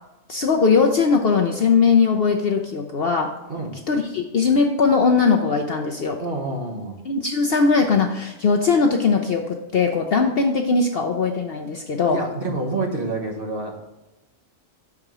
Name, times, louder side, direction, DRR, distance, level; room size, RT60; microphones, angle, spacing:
voice 1, 0.3-3.3 3.9-6.2 7.0-12.2, left 5 dB, 55° left, 3 dB, 0.7 m, -20 dB
voice 2, 6.2-7.0 12.1-13.9, right 3 dB, 45° right, 0 dB, 1.3 m, -28 dB
6.6 x 4.8 x 6.0 m, 1.0 s
omnidirectional pair, 1.4 m